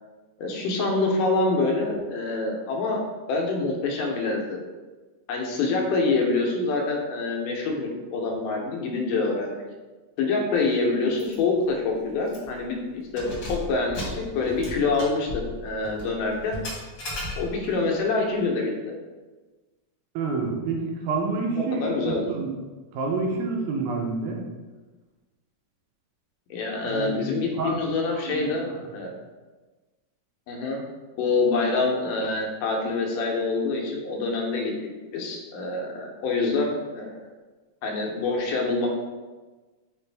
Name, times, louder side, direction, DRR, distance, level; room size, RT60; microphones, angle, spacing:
voice 1, 0.4-3.0 3.3-4.6 5.3-9.6 10.2-15.3 15.6-16.6 17.4-18.9 21.6-22.3 26.5-29.1 30.5-30.8 31.2-34.7 35.1-37.2 37.8-38.9, left 3 dB, 90° left, 0 dB, 2.3 m, -26 dB
Keys jangling, 11.2-11.4 11.7-11.8 12.3-12.6 13.0-17.8, left 1 dB, 55° left, 1.4 m, -36 dB
voice 2, 20.2-22.5 22.9-24.4 26.9-27.3 27.6-27.8 28.1-28.8, right 4 dB, 80° right, 1 dB, 2.0 m, -28 dB
6.0 x 2.5 x 3.3 m, 1.3 s
omnidirectional pair, 3.6 m